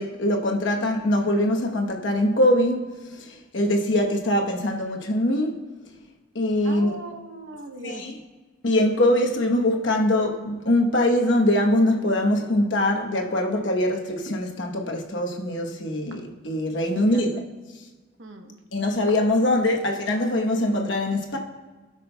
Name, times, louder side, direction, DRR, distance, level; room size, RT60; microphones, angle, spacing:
voice 1, 0.0-5.6 6.3-7.0 7.8-8.2 8.6-17.4 18.7-21.4, left 1 dB, 75° left, 1.0 m, -23 dB
voice 2, 6.6-8.0 17.0-17.2 18.2-18.6, right 2 dB, 85° right, 0.9 m, -39 dB
17.5 x 6.1 x 2.2 m
head